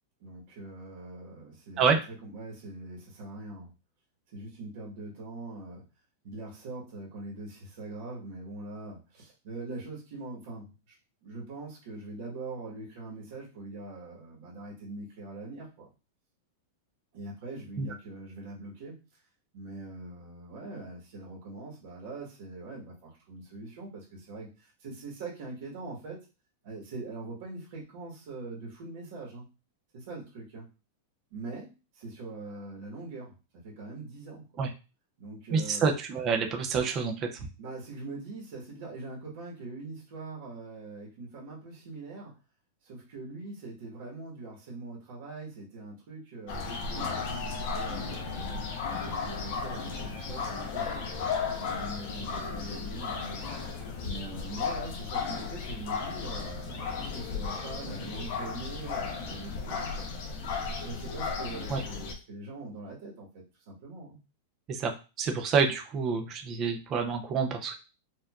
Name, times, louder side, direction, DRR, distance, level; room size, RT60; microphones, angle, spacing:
voice 1, 0.2-1.8 2.1-3.7 4.3-5.8 6.2-10.9 11.2-15.9 17.1-19.0 19.5-26.2 26.6-29.5 29.9-30.7 31.3-33.4 33.6-34.6 35.2-35.9 37.6-42.3 42.8-47.2 47.7-53.4 54.0-60.1 60.8-64.2, right 2 dB, 55° right, -3 dB, 1.2 m, -42 dB
voice 2, 35.5-37.5 61.7-61.8 64.7-67.7, right 5 dB, 25° right, 4 dB, 0.5 m, -28 dB
sound 1, 46.5-62.1, left 5 dB, 50° left, 0.8 m, -35 dB
4.5 x 2.5 x 2.3 m, 0.31 s
supercardioid pair, 165°, 0 cm